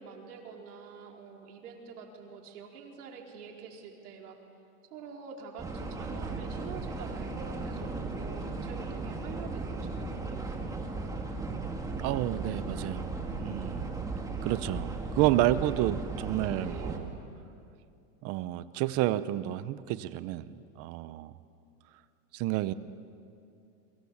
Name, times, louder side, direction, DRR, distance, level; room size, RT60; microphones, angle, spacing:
voice 1, 0.0-4.4 4.9-10.5 16.5-17.0, right 6 dB, 85° right, 1 dB, 4.7 m, -46 dB
sound 1, 5.6-17.0, right 3 dB, 10° right, 2.0 m, -36 dB
voice 2, 11.8-13.9 14.4-17.1 18.2-20.4 20.8-21.3 22.3-22.7, right 14 dB, 35° right, 15 dB, 0.7 m, -30 dB
30.0 x 23.5 x 7.2 m, 2.6 s
supercardioid pair, 155°, 44 cm